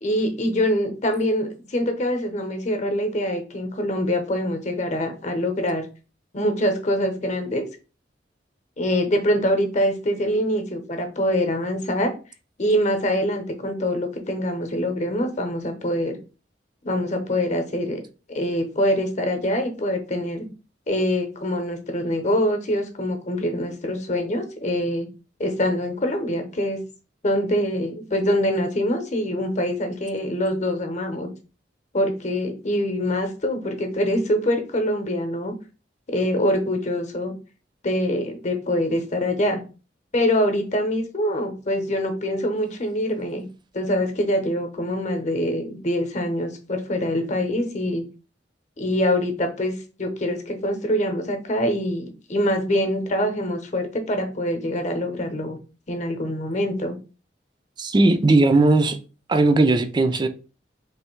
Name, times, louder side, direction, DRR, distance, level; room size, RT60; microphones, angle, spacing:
voice 1, 0.0-5.8 6.3-7.7 8.8-12.1 12.6-16.2 16.8-18.0 18.3-20.5 20.9-25.1 25.4-26.8 27.2-31.3 31.9-35.5 36.1-37.3 37.8-39.6 40.1-43.5 43.7-48.0 48.8-55.6 55.9-57.0, equal, 40° left, 0.9 m, -24 dB
voice 2, 57.8-59.0 59.3-60.3, right 2 dB, 25° right, 0.4 m, -17 dB
3.3 x 2.6 x 4.5 m
head